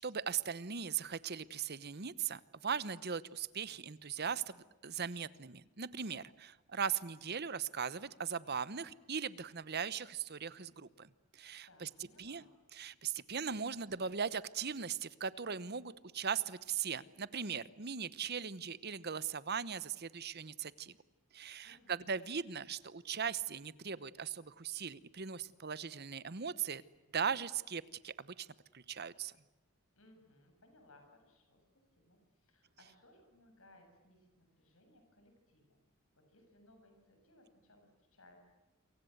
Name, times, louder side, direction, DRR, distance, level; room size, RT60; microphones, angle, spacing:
voice 1, 0.0-11.9 12.2-12.4 12.7-20.9 21.3-26.8 27.1-28.5 28.7-29.3, right 7 dB, 45° right, 17 dB, 1.0 m, -39 dB
voice 2, 11.7-12.5 21.6-22.2 30.0-35.8 36.1-38.5, left 1 dB, 65° left, 5 dB, 7.5 m, -64 dB
28.5 x 24.0 x 8.0 m, 1.1 s
head